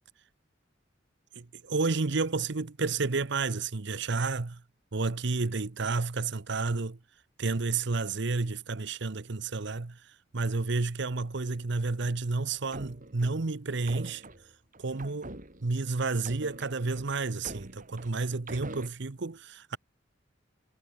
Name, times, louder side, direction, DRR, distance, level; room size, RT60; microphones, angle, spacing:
voice 1, 1.3-4.6 4.9-7.0 7.4-10.0 10.3-14.3 14.8-19.8, right 3 dB, 65° right, 0.9 m, -31 dB
sound 1, 12.5-15.8 16.2-18.9, right 2 dB, 45° right, 6.8 m, -45 dB
head